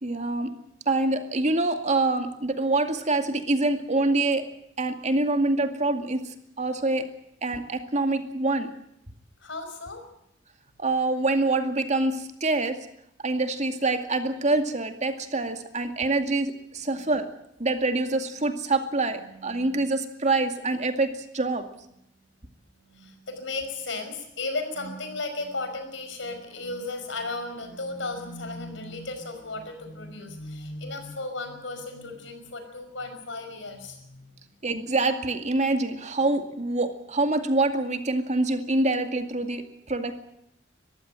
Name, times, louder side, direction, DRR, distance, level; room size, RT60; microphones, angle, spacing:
voice 1, 0.0-0.5 0.9-4.4 4.8-7.1 7.4-8.7 10.8-12.8 13.2-17.3 17.6-21.6 34.6-40.2, right 2 dB, 40° right, 7 dB, 2.2 m, -25 dB
voice 2, 9.4-10.0 17.0-17.1 19.3-19.8 22.9-34.3, left 2 dB, 70° left, 7 dB, 5.3 m, -35 dB
22.5 x 15.0 x 9.0 m, 0.78 s
head